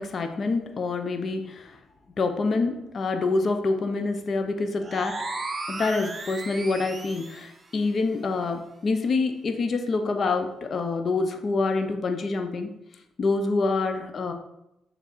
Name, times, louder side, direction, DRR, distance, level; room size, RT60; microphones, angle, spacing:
voice 1, 0.0-1.8 2.2-5.2 5.7-12.7 13.2-14.3, left 3 dB, 45° left, 7 dB, 0.7 m, -26 dB
sound 1, 4.8-7.5, right 3 dB, 25° right, 0.7 m, -35 dB
6.9 x 3.8 x 4.5 m, 0.85 s
cardioid pair, 90°, 0 cm